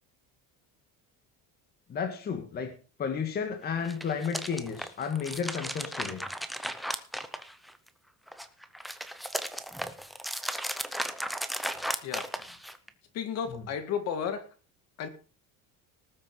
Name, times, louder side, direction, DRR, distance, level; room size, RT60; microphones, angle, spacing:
voice 1, 1.9-2.7 3.0-6.2, left 6 dB, 25° left, 6 dB, 1.8 m, -32 dB
sound 1, 3.7-7.9 8.3-12.9, equal, ahead, 0.7 m, -35 dB
voice 2, 13.1-14.5 15.0-15.1, left 7 dB, 45° left, 9 dB, 2.1 m, -33 dB
19.0 x 7.8 x 5.5 m, 0.37 s
cardioid pair, 180°, 35 cm